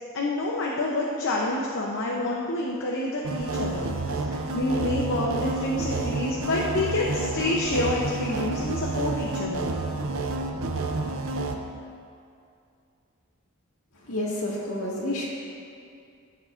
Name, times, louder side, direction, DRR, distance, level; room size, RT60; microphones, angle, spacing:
voice 1, 0.1-9.7, left 2 dB, 60° left, -3 dB, 0.7 m, -28 dB
sound 1, 3.2-11.5, right 2 dB, 65° right, 0.6 m, -29 dB
voice 2, 14.0-15.3, left 1 dB, 75° left, -4 dB, 1.9 m, -29 dB
13.5 x 7.5 x 2.5 m, 2.5 s
head